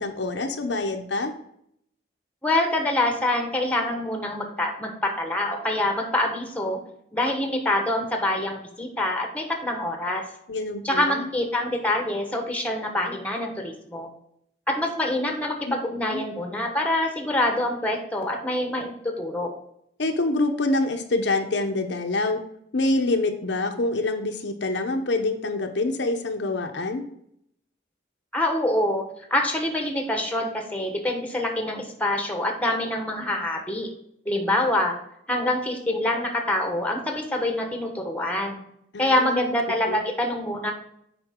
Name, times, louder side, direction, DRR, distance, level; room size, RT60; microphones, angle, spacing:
voice 1, 0.0-1.3 10.5-11.3 15.7-16.2 20.0-22.4 22.7-27.1 38.9-39.5 39.9-40.0, left 2 dB, 70° left, 5 dB, 0.8 m, -26 dB
voice 2, 2.4-6.8 7.1-10.2 10.8-14.1 14.7-19.5 28.3-29.0 29.3-33.9 34.2-34.9 35.3-38.6 39.0-40.7, left 1 dB, 10° left, 3 dB, 1.2 m, -25 dB
8.0 x 5.2 x 3.6 m, 0.73 s
head